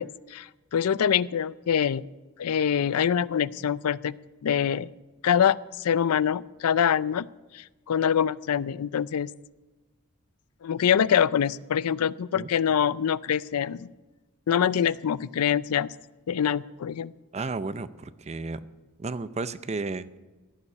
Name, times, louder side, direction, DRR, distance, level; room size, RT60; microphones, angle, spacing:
voice 1, 0.0-2.0 2.4-4.1 4.4-4.9 5.2-7.3 7.5-9.3 10.6-13.9 14.5-15.9 16.3-17.1, left 8 dB, 75° left, 19 dB, 0.4 m, -25 dB
voice 2, 17.3-18.7 19.0-20.2, right 3 dB, 30° right, 14 dB, 0.5 m, -33 dB
15.5 x 7.0 x 8.6 m, 1.2 s
head